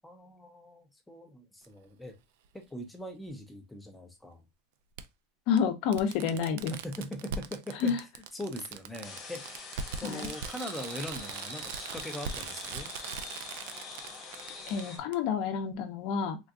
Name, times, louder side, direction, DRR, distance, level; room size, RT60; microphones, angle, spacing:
voice 1, 0.0-2.1 2.7-4.4 6.8-8.0 8.3-9.6 10.0-12.9, left 1 dB, 5° left, 0.5 m, -41 dB
Fireworks, 1.6-1.7 3.3-3.4 5.0-5.1 5.6-5.7 5.9-14.8 15.1-15.2, right 6 dB, 75° right, 0.3 m, -40 dB
voice 2, 5.5-6.7 7.8-8.0 10.0-10.3 14.7-16.4, left 7 dB, 45° left, 0.6 m, -29 dB
sound 1, 9.0-15.0, left 4 dB, 20° left, 1.1 m, -44 dB
3.7 x 2.5 x 2.2 m
supercardioid pair, 175°, 0 cm